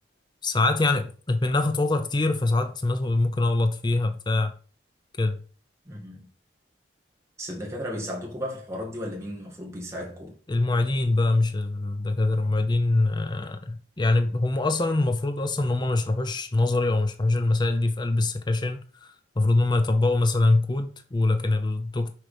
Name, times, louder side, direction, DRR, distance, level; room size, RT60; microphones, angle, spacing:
voice 1, 0.4-4.6 5.2-5.4 10.5-22.1, left 2 dB, 25° left, 0.6 m, -24 dB
voice 2, 5.9-6.3 7.4-10.4, equal, 15° right, 2.0 m, -35 dB
6.2 x 4.8 x 5.1 m
head